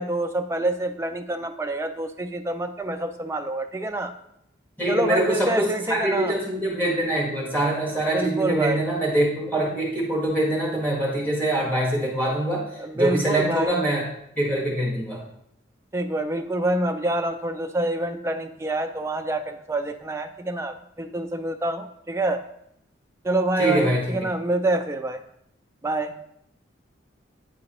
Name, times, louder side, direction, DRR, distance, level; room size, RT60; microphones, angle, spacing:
voice 1, 0.0-4.1 4.9-6.3 8.1-8.8 12.8-13.8 15.9-22.4 23.2-25.2 25.8-26.1, right 2 dB, 15° right, 5 dB, 0.3 m, -26 dB
voice 2, 4.8-14.1 14.3-15.2 23.6-24.2, right 1 dB, 10° left, -4 dB, 1.6 m, -24 dB
9.7 x 3.8 x 2.9 m, 0.75 s
head